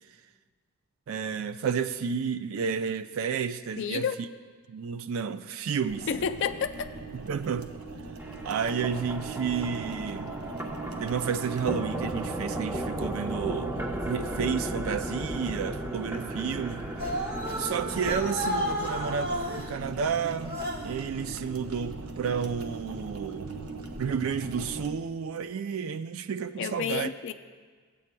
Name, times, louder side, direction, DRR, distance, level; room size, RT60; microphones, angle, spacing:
voice 1, 1.1-4.1 4.7-6.1 7.2-7.7 8.4-10.3 11.0-13.8 14.0-16.9 17.6-23.5 24.0-27.1, right 6 dB, 70° right, 0.4 m, -31 dB
voice 2, 3.8-4.2 6.1-6.9 26.6-27.3, left 7 dB, 55° left, 0.4 m, -30 dB
sound 1, 5.9-24.9, right 3 dB, 90° right, 0.8 m, -41 dB
sound 2, 8.2-19.6, right 1 dB, 10° right, 0.7 m, -35 dB
sound 3, 17.0-19.7 20.4-21.0, equal, 45° right, 1.2 m, -32 dB
17.5 x 8.4 x 2.2 m
head